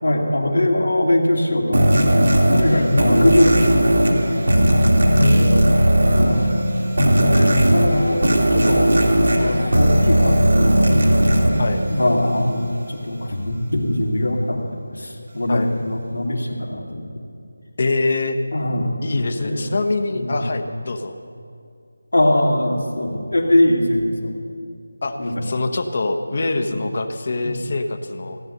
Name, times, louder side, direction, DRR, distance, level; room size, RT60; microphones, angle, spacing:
voice 1, 0.0-2.2 2.5-3.8 4.2-4.8 6.2-6.5 7.1-8.9 9.3-11.0 11.9-17.1 18.5-19.0 19.4-19.7 20.1-20.7 22.1-24.3 25.2-25.4 26.6-26.8 27.4-27.7, left 1 dB, 75° left, 0 dB, 2.6 m, -22 dB
sound 1, 1.7-12.5, right 1 dB, 70° right, 2.5 m, -17 dB
voice 2, 2.7-3.3 5.2-5.8 11.6-11.8 15.5-15.7 17.8-18.4 19.0-21.2 25.0-28.4, left 2 dB, 45° left, 7 dB, 1.1 m, -24 dB
16.5 x 9.1 x 6.7 m, 2.4 s
figure-of-eight pair, 165°, 0 cm